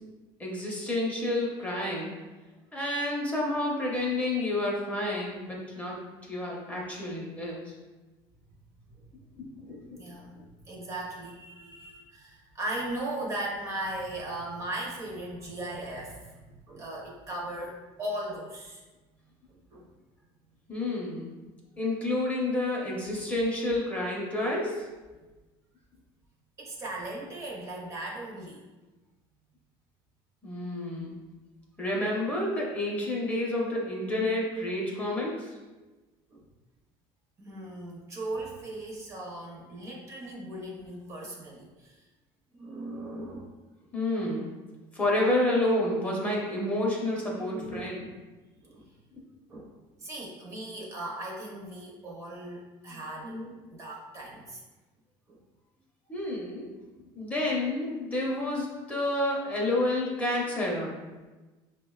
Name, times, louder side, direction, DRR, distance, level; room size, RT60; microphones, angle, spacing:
voice 1, 0.4-2.2 2.7-6.0 6.2-7.7 9.4-10.0 20.7-21.3 21.8-24.9 30.4-31.2 31.8-35.5 43.9-44.5 44.9-48.1 56.1-56.7 57.1-61.0, left 1 dB, 15° left, -3 dB, 0.6 m, -29 dB
voice 2, 9.9-10.4 10.6-18.8 19.5-19.8 26.6-28.6 36.3-36.4 37.4-42.0 42.5-43.5 47.4-48.2 48.6-48.9 49.5-54.6 55.3-55.4, right 1 dB, 30° right, -3 dB, 0.6 m, -38 dB
4.9 x 2.1 x 2.3 m, 1.2 s
cardioid pair, 140°, 11 cm